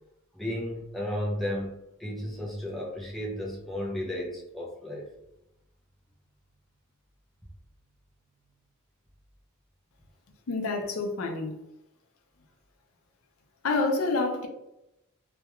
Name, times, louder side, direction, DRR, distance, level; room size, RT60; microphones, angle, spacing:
voice 1, 0.3-5.1, left 1 dB, ahead, 0.5 m, -34 dB
voice 2, 10.5-11.6 13.6-14.5, left 3 dB, 90° left, 0.5 m, -28 dB
2.3 x 2.1 x 2.9 m
head